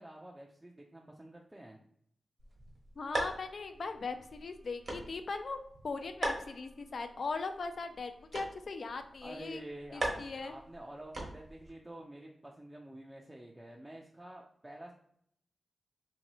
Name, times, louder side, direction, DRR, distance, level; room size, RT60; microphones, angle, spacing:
voice 1, 0.0-1.8 9.2-14.9, right 1 dB, 15° right, -1 dB, 0.4 m, -49 dB
sound 1, 2.4-11.7, right 1 dB, 55° right, 0.9 m, -42 dB
voice 2, 3.0-5.6 5.8-9.6 9.9-10.5, left 4 dB, 65° left, 7 dB, 0.4 m, -39 dB
2.9 x 2.7 x 3.0 m, 0.69 s
cardioid pair, 65°, 0 cm